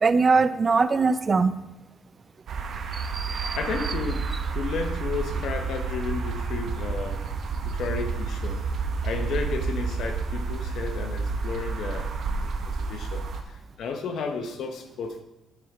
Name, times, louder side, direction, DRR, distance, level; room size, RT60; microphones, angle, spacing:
voice 1, 0.0-1.5 2.9-3.6, right 4 dB, 35° right, 12 dB, 0.6 m, -22 dB
sound 1, 2.5-13.4, right 4 dB, 65° right, 1.1 m, -30 dB
voice 2, 3.6-4.3 4.5-7.2 7.6-8.6 9.0-13.2 13.8-15.2, left 5 dB, 70° left, 5 dB, 1.2 m, -33 dB
13.0 x 4.8 x 3.8 m, 1.0 s
cardioid pair, 90°, 0 cm